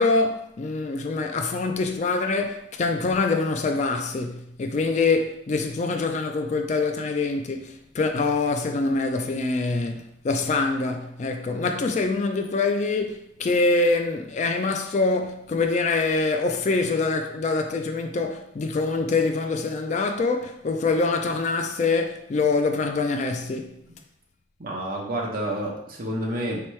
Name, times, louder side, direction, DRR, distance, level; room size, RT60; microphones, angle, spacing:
voice 1, 0.0-23.8, left 3 dB, 40° left, 0.3 m, -25 dB
voice 2, 24.6-26.6, right 1 dB, 45° right, 0.9 m, -29 dB
4.4 x 3.0 x 3.1 m
head